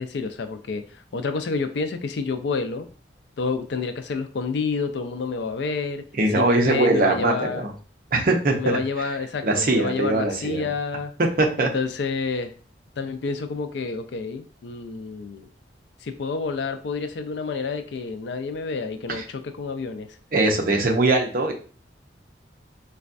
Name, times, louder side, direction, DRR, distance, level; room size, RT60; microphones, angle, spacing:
voice 1, 0.0-2.9 3.4-6.0 6.3-7.7 8.6-11.1 11.6-12.5 13.0-15.5 16.0-20.1, left 4 dB, 75° left, 9 dB, 0.4 m, -29 dB
voice 2, 6.2-7.7 8.1-8.8 9.4-10.7 11.4-11.7 20.3-21.5, right 2 dB, 50° right, 1 dB, 0.7 m, -21 dB
4.0 x 2.2 x 2.5 m, 0.39 s
head